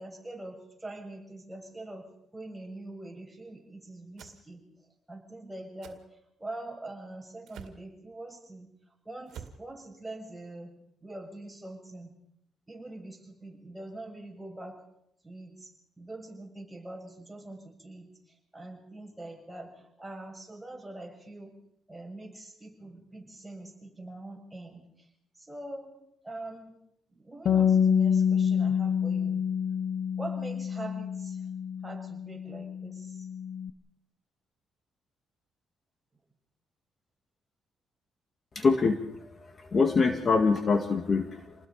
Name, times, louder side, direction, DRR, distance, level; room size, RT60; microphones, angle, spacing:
voice 1, 0.0-4.6 5.1-8.7 9.0-10.7 11.0-12.1 12.7-14.8 15.2-15.7 16.0-21.6 21.9-25.1 25.4-26.0 26.2-26.8 27.1-29.4 30.2-31.4 31.8-33.3, right 2 dB, 10° right, 0 dB, 7.3 m, -43 dB
sound 1, 4.2-4.4 5.8-6.0 7.5-7.8 9.3-9.6, right 8 dB, 80° right, 2.3 m, -46 dB
Bass guitar, 27.5-33.7, left 7 dB, 55° left, 1.1 m, -27 dB
voice 2, 38.6-39.0 39.4-41.5, left 4 dB, 40° left, 6 dB, 2.0 m, -24 dB
28.0 x 20.0 x 5.4 m, 0.75 s
cardioid pair, 90°, 0 cm